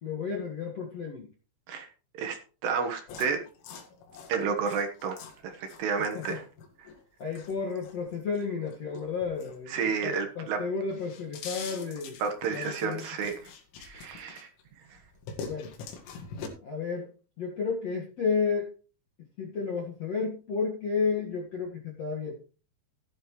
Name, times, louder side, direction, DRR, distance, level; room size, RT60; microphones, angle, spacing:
voice 1, 0.0-1.3 6.1-6.4 7.2-9.7 10.0-12.2 12.5-13.0 15.4-15.7 16.6-17.1 17.4-18.7 19.4-22.4, left 5 dB, 55° left, -1 dB, 1.8 m, -32 dB
voice 2, 2.1-3.4 4.3-6.5 6.8-6.9 9.7-10.6 12.2-13.5 13.8-14.5 14.9-15.0, right 6 dB, 70° right, 4 dB, 3.2 m, -31 dB
sound 1, 3.1-10.2 10.6-14.6 15.0-16.5, left 6 dB, 90° left, 4.5 m, -44 dB
15.5 x 10.5 x 3.1 m, 0.38 s
omnidirectional pair, 5.5 m